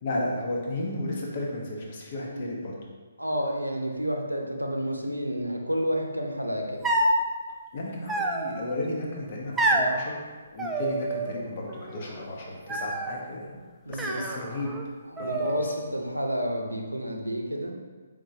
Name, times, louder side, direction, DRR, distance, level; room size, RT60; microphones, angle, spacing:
voice 1, 0.0-2.7 7.7-10.2 10.5-13.5 13.9-14.7 15.2-15.7, left 1 dB, 40° left, -2 dB, 0.9 m, -33 dB
voice 2, 2.2-2.5 3.2-6.8 13.8-14.3 15.0-17.7, equal, 85° right, 1 dB, 0.7 m, -30 dB
sound 1, 6.8-7.3 8.1-8.8 9.6-9.9 10.6-11.4 11.7-12.2 12.7-13.2 13.9-14.8 15.2-15.9, right 1 dB, 5° right, 0.3 m, -28 dB
4.8 x 3.7 x 2.8 m, 1.4 s
figure-of-eight pair, 135°, 0 cm